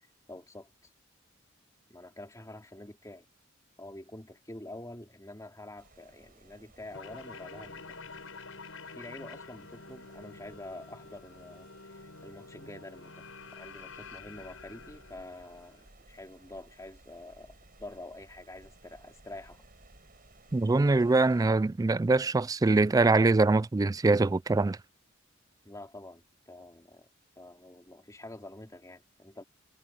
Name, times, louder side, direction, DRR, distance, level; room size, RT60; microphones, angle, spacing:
voice 1, 0.3-0.7 1.9-3.3 3.8-8.0 9.0-19.6 25.6-27.1 27.4-29.4, left 1 dB, 15° left, 2.7 m, -47 dB
sound 1, 5.8-21.5, right 2 dB, 45° right, 7.8 m, -59 dB
sound 2, 6.9-15.9, left 4 dB, 85° left, 5.8 m, -48 dB
voice 2, 20.5-24.8, right 3 dB, 20° right, 0.3 m, -23 dB
head